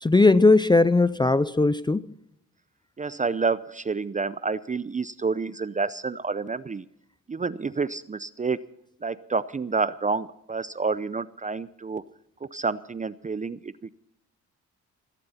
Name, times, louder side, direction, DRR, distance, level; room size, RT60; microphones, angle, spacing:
voice 1, 0.0-2.1, left 3 dB, 15° left, 0.5 m, -19 dB
voice 2, 3.0-6.8 7.3-8.6 9.0-12.0 12.5-13.9, right 4 dB, 25° right, 0.6 m, -29 dB
17.0 x 15.5 x 4.2 m
cardioid pair, 75°, 31 cm